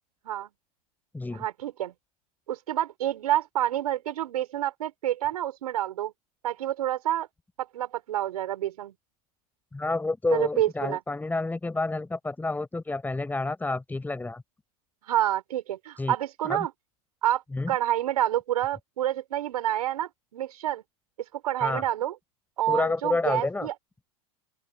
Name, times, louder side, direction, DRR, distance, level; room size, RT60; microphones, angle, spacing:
voice 1, 1.3-1.9 2.5-6.1 6.4-7.3 7.6-8.9 10.3-11.0 15.1-16.7 17.2-17.4 17.7-20.8 21.3-22.1 22.6-23.7, right 13 dB, 85° right, 5.0 m, -28 dB
voice 2, 9.7-14.4 16.0-16.1 16.5-16.7 17.5-17.7 21.6-21.8 22.7-23.7, left 2 dB, 10° left, 5.1 m, -29 dB
open air
hypercardioid pair, 110°, 19 cm